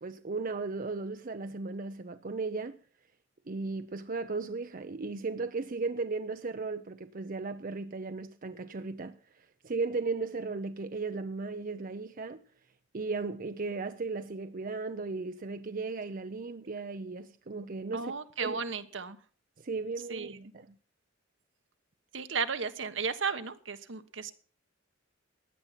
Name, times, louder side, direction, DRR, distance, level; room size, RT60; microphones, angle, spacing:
voice 1, 0.0-2.8 3.5-12.4 12.9-18.1 18.4-18.6 19.6-20.3 20.5-20.8, right 3 dB, 45° right, 0.6 m, -36 dB
voice 2, 17.9-19.2 20.1-20.5 22.1-24.3, right 5 dB, 70° right, 1.3 m, -34 dB
16.0 x 10.5 x 5.8 m
head